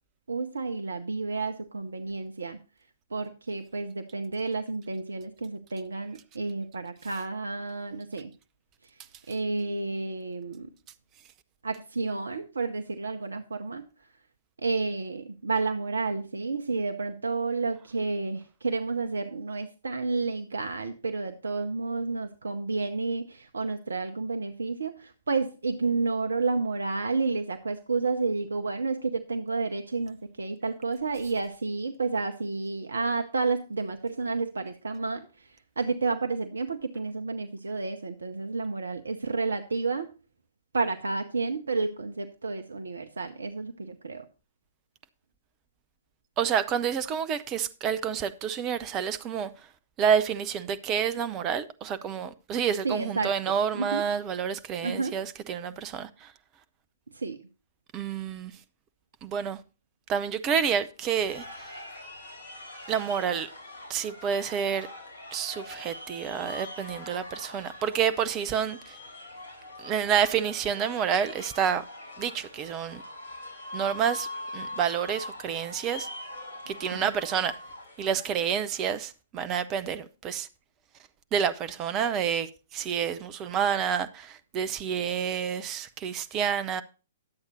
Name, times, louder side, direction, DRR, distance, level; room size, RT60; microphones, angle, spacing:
voice 1, 0.3-2.6 3.1-8.3 8.8-9.0 9.3-10.7 11.6-13.8 14.6-40.1 40.7-44.3 52.8-53.3 53.7-54.0 54.8-55.1 57.1-57.5 76.9-77.1, right 3 dB, 65° right, 0.7 m, -31 dB
voice 2, 46.4-49.5 50.0-56.3 57.9-58.5 59.2-59.6 60.1-61.7 62.9-63.5 63.9-64.9 65.3-69.0 69.8-71.8 72.2-73.0 73.7-74.3 74.5-76.1 76.7-77.6 78.0-80.5 81.3-86.8, right 8 dB, 25° right, 0.7 m, -29 dB
sound 1, 61.0-79.0, left 1 dB, 55° left, 4.0 m, -43 dB
10.5 x 8.0 x 4.0 m
figure-of-eight pair, 115°, 0 cm